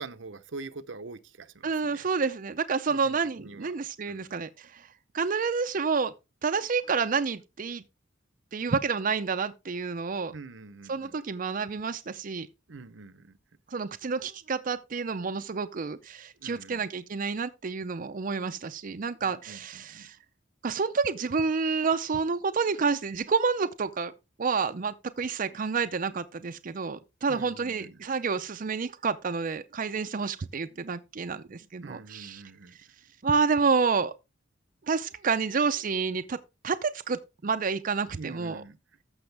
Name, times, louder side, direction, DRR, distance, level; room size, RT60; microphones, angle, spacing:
voice 1, 0.0-2.1 2.9-3.7 4.1-4.3 10.3-11.2 12.7-13.4 16.4-16.9 19.2-20.1 27.3-28.0 31.8-32.8 38.1-38.8, right 3 dB, 80° right, 0.8 m, -44 dB
voice 2, 1.6-4.9 5.1-6.1 6.4-7.8 8.5-10.3 10.9-12.5 13.7-20.2 20.6-24.1 24.4-32.4 33.2-34.1 34.9-36.4 36.6-38.6, right 5 dB, 45° right, 0.5 m, -29 dB
14.0 x 6.3 x 3.4 m
head